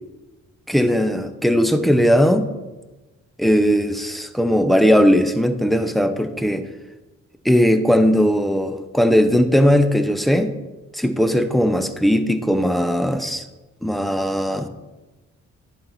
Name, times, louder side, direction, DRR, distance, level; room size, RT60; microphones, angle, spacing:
voice 1, 0.7-2.5 3.4-6.6 7.4-10.5 10.9-13.4 13.8-14.7, equal, ahead, 8 dB, 0.7 m, -18 dB
10.0 x 4.3 x 4.2 m, 1.1 s
supercardioid pair, 55°, 32 cm